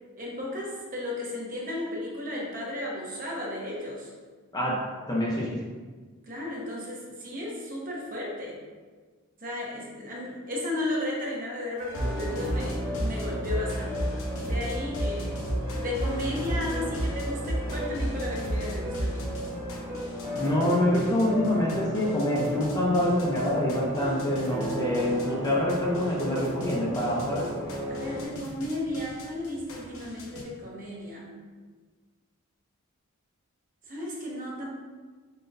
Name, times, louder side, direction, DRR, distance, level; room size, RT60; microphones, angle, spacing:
voice 1, 0.2-4.1 6.2-8.6 9.4-14.0 14.4-15.4 15.8-19.3 27.9-31.3 33.9-34.7, left 1 dB, 40° right, -4 dB, 0.9 m, -34 dB
voice 2, 5.1-5.6 20.4-27.5, left 1 dB, 20° left, -4 dB, 0.7 m, -26 dB
sound 1, 11.8-30.4, equal, 65° left, 0.8 m, -34 dB
sound 2, 11.9-28.2, equal, 10° right, 1.2 m, -35 dB
4.4 x 3.8 x 2.6 m, 1.4 s
head